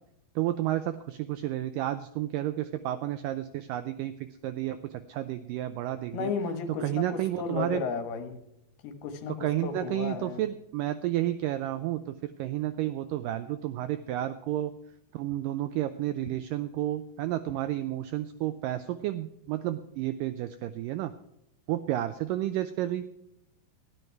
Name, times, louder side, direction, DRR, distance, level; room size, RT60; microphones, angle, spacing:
voice 1, 0.4-4.1 4.4-6.3 6.8-7.8 9.4-14.7 15.1-21.1 21.7-23.0, right 13 dB, 85° right, 11 dB, 1.9 m, -31 dB
voice 2, 6.1-8.4 8.8-10.4, left 5 dB, 80° left, 7 dB, 3.4 m, -34 dB
13.5 x 11.0 x 4.6 m, 0.80 s
omnidirectional pair, 4.5 m